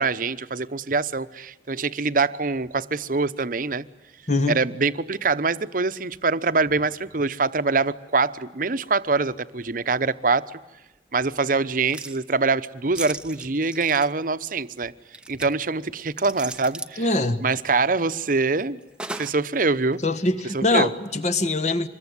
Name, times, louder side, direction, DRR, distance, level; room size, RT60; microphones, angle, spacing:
voice 1, 0.0-3.8 4.5-10.5 11.1-14.9 15.3-17.0 17.4-18.8 19.1-20.0 20.5-20.9, right 4 dB, 50° right, 12 dB, 0.9 m, -24 dB
voice 2, 4.3-4.6 17.0-17.5 20.0-21.9, left 2 dB, 40° left, 8 dB, 1.5 m, -23 dB
sound 1, 11.7-12.2 12.9-14.1 15.1-15.5 16.2-17.0 19.0-19.5 19.9-20.0, right 2 dB, 5° right, 0.8 m, -36 dB
25.5 x 21.5 x 9.6 m, 1.0 s
head